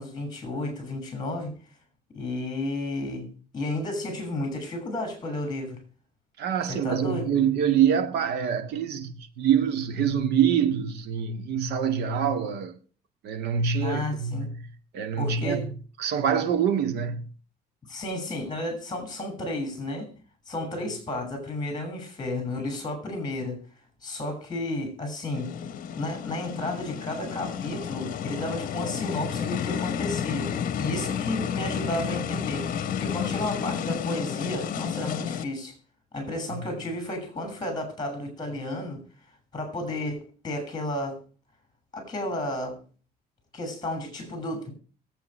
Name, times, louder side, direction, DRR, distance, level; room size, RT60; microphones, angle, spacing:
voice 1, 0.0-1.5 2.1-5.8 6.7-7.3 13.8-14.5 15.2-15.7 17.9-20.1 20.5-23.6 24.0-25.6 25.9-32.7 33.0-35.8 36.1-39.0 39.5-41.2 41.9-42.8 43.5-44.7, left 1 dB, 25° left, 6.4 m, -32 dB
voice 2, 6.4-12.8 13.2-14.7 14.9-17.3 36.5-36.6, right 8 dB, 75° right, 2.0 m, -25 dB
sound 1, 25.3-35.4, left 8 dB, 55° left, 1.1 m, -31 dB
22.0 x 8.5 x 3.3 m
cardioid pair, 110°, 17 cm